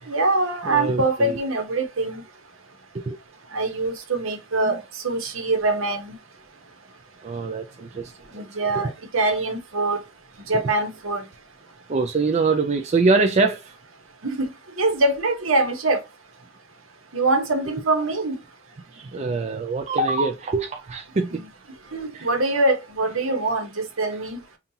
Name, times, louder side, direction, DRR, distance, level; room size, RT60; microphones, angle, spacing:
voice 1, 0.1-2.2 3.5-6.1 8.3-10.0 10.5-11.2 14.2-14.5 14.8-16.0 17.1-18.4 21.3-21.5 21.9-24.4, right 2 dB, 65° right, 1.0 m, -23 dB
voice 2, 0.6-1.4 2.9-3.2 4.6-4.8 7.2-8.4 8.8-8.9 9.2-9.3 11.9-13.8 18.9-21.4 22.1-22.3, right 3 dB, 30° right, 0.4 m, -24 dB
5.4 x 2.4 x 2.7 m
head